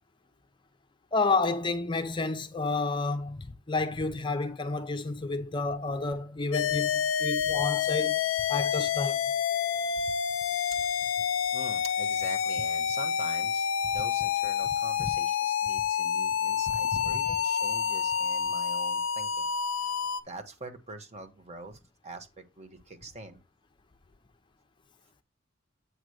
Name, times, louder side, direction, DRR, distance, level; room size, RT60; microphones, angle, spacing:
voice 1, 1.1-8.2 8.5-9.2 15.0-15.1 16.9-17.2, left 3 dB, 25° left, 0.6 m, -30 dB
sound 1, 6.5-20.2, left 7 dB, 70° left, 0.5 m, -28 dB
voice 2, 11.5-19.5 19.8-19.9 20.2-23.4, right 2 dB, 35° right, 1.1 m, -44 dB
8.1 x 3.0 x 6.3 m
head